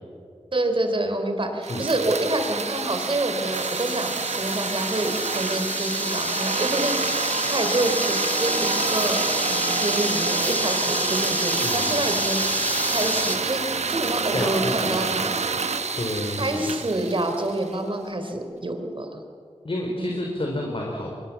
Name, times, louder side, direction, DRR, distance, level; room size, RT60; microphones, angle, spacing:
voice 1, 0.5-8.5 8.9-13.6 13.9-15.4 16.4-19.2 20.0-20.1, right 1 dB, 50° right, 5 dB, 3.6 m, -27 dB
sound 1, 1.6-17.8, right 4 dB, 80° right, 1.1 m, -28 dB
sound 2, 3.5-13.4, left 1 dB, 15° left, 2.8 m, -28 dB
voice 2, 11.6-12.0 14.3-15.1 16.0-16.7 19.6-21.1, left 1 dB, 55° left, 0 dB, 3.9 m, -29 dB
22.5 x 22.0 x 7.2 m, 2.3 s
wide cardioid pair, 55°, 11 cm